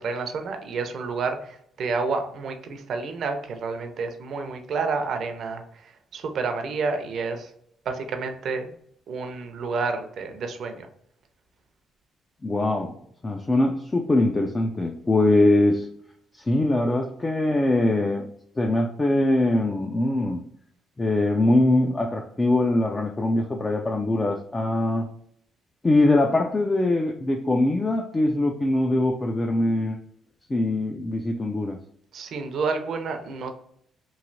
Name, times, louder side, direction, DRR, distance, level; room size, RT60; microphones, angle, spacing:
voice 1, 0.0-7.5 7.9-8.7 9.1-10.9 32.1-33.5, right 4 dB, 65° right, 6 dB, 0.5 m, -29 dB
voice 2, 12.4-13.0 13.2-15.9 16.4-18.3 18.6-20.4 21.0-25.1 25.8-30.0 30.5-31.8, left 2 dB, 25° left, 2 dB, 0.4 m, -22 dB
3.1 x 2.6 x 2.6 m, 0.67 s
cardioid pair, 90°, 0 cm